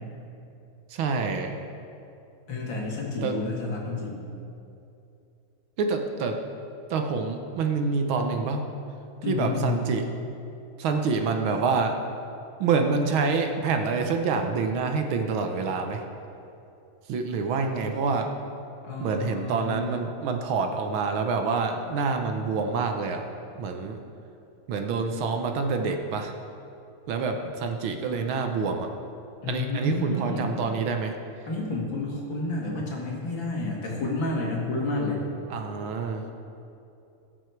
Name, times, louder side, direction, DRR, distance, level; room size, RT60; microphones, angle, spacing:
voice 1, 0.9-1.5 3.2-3.3 5.8-6.4 6.9-8.6 9.3-10.0 10.8-12.0 12.6-16.0 17.1-18.3 19.0-23.2 23.6-24.0 24.7-26.3 27.1-28.9 29.5-31.1 35.5-36.2, right 4 dB, 70° right, 5 dB, 1.6 m, -27 dB
voice 2, 2.5-4.2 9.2-9.9 18.8-19.8 29.4-30.5 31.5-35.2, left 2 dB, 60° left, -3 dB, 2.7 m, -30 dB
19.0 x 6.5 x 4.6 m, 2.7 s
omnidirectional pair, 2.4 m